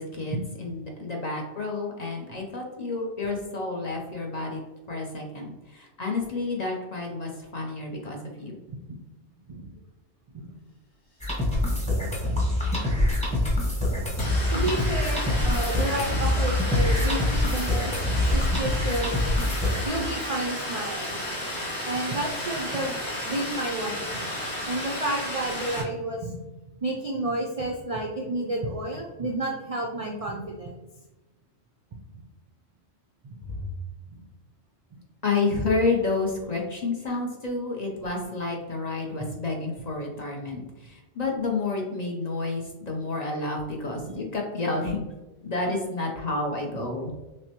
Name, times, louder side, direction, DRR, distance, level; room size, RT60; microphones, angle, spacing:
voice 1, 0.0-4.6 4.9-8.6 33.6-33.7 35.2-45.0 45.4-47.1, left 3 dB, 45° left, 0 dB, 0.6 m, -30 dB
sound 1, 11.2-19.9, left 1 dB, 5° left, 0.8 m, -25 dB
sound 2, 12.4-25.8, left 1 dB, 70° left, 2.0 m, -33 dB
voice 2, 14.5-19.1 19.9-21.1 21.8-24.3 24.7-26.4 26.8-30.8 34.1-34.2, right 2 dB, 55° right, -1 dB, 0.4 m, -31 dB
6.1 x 2.1 x 2.8 m, 1.1 s
omnidirectional pair, 1.2 m